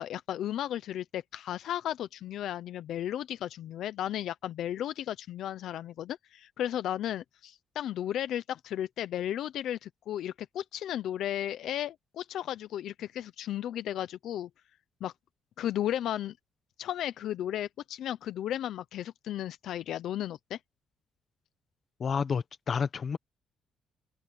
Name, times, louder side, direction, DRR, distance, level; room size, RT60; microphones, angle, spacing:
voice 1, 0.0-14.5 15.0-15.1 15.6-16.4 16.8-20.6, left 11 dB, 75° left, 0.7 m, -34 dB
voice 2, 22.0-23.2, left 6 dB, 40° left, 1.2 m, -30 dB
open air
cardioid pair, 145°, 0 cm